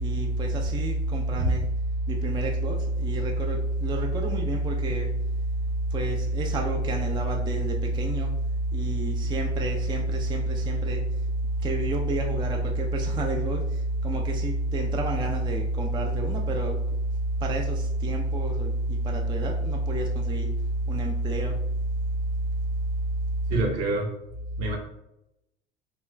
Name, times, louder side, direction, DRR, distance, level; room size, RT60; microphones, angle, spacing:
voice 1, 0.0-1.6 2.1-5.1 5.9-8.3 8.7-11.0 11.6-13.6 14.0-16.8 17.4-18.7 19.0-20.5 20.9-21.6, right 1 dB, 15° right, 1 dB, 0.4 m, -27 dB
voice 2, 23.5-24.1 24.6-24.8, right 2 dB, 50° right, 0 dB, 0.9 m, -26 dB
3.2 x 2.9 x 2.2 m, 0.86 s
figure-of-eight pair, 55°, 32 cm